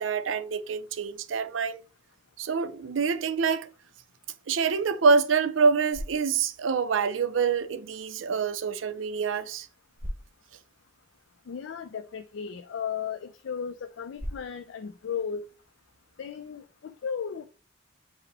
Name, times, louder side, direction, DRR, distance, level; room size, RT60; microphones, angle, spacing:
voice 1, 0.0-1.8 2.4-3.7 4.5-9.7, right 5 dB, 90° right, 0.5 m, -26 dB
sound 1, 5.5-16.6, equal, 15° right, 1.1 m, -46 dB
voice 2, 11.5-15.5 16.2-17.5, left 7 dB, 75° left, 0.4 m, -35 dB
5.2 x 2.1 x 4.0 m
head